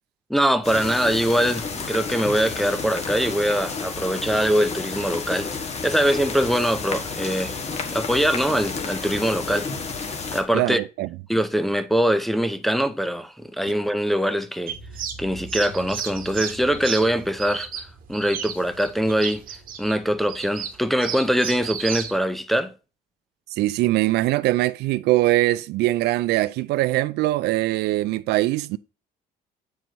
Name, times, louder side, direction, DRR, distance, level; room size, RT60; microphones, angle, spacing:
voice 1, 0.3-5.5 5.8-7.5 7.9-9.7 10.3-10.8 11.3-14.8 15.2-19.4 19.8-22.7, equal, ahead, 0.5 m, -23 dB
sound 1, 0.6-10.4, left 4 dB, 40° left, 1.3 m, -31 dB
voice 2, 10.5-11.1 23.5-28.8, right 17 dB, 80° right, 0.4 m, -22 dB
sound 2, 14.7-22.1, right 7 dB, 60° right, 1.3 m, -34 dB
7.6 x 4.7 x 4.0 m
cardioid pair, 110°, 17 cm